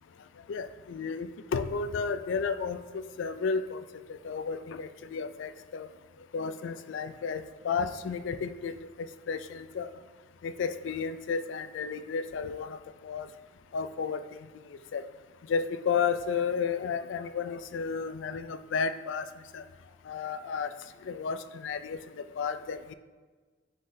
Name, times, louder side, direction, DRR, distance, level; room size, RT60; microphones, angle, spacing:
voice 1, 0.5-3.8 4.1-5.9 6.3-8.7 9.3-9.9 10.4-13.3 13.7-14.4 14.7-15.0 15.5-19.3 19.5-19.6 20.1-20.7 21.0-22.9, left 5 dB, 70° left, 12 dB, 0.3 m, -32 dB
9.4 x 3.8 x 2.7 m, 1.4 s
head